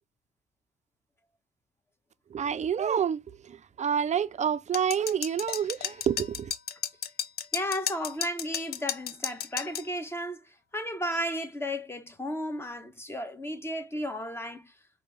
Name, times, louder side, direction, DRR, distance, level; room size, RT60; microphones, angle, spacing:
voice 1, 2.3-6.5, right 8 dB, 35° right, 0.4 m, -28 dB
sound 1, 4.7-9.9, left 9 dB, 55° left, 0.5 m, -33 dB
voice 2, 7.5-10.4 10.7-14.7, equal, 10° left, 1.0 m, -34 dB
5.0 x 2.6 x 3.2 m
cardioid pair, 90°, 20 cm